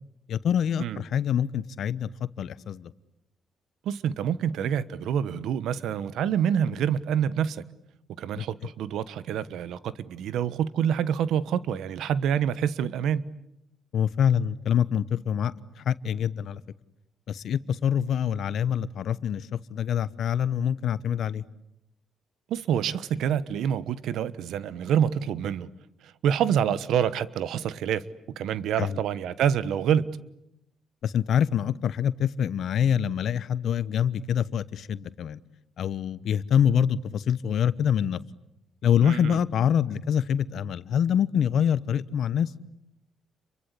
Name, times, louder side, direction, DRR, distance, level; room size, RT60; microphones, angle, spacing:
voice 1, 0.3-2.1 2.4-2.9 8.4-8.5 13.9-15.5 15.8-16.6 17.3-21.4 28.8-29.0 31.0-35.4 35.8-38.2 38.8-42.5, left 8 dB, 65° left, 1.0 m, -25 dB
voice 2, 3.8-7.6 8.2-13.2 22.5-25.7 26.0-28.0 28.4-30.2 39.0-39.4, right 9 dB, 80° right, 1.2 m, -27 dB
30.0 x 24.0 x 8.4 m
cardioid pair, 90°, 0 cm